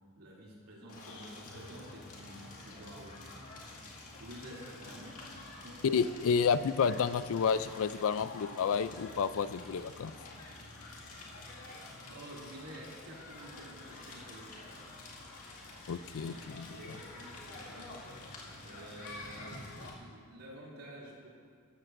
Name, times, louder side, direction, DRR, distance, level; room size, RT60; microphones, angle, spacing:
voice 1, 0.2-3.4 4.2-5.3 5.6-5.9 12.1-15.0 16.1-17.9 18.6-21.3, right 1 dB, 85° right, -5 dB, 2.8 m, -50 dB
Crackle, 0.9-19.9, left 2 dB, 80° left, 2.1 m, -48 dB
voice 2, 5.8-10.1 15.9-16.7, left 6 dB, 65° left, 14 dB, 0.4 m, -30 dB
14.0 x 13.5 x 2.6 m, 2.1 s
head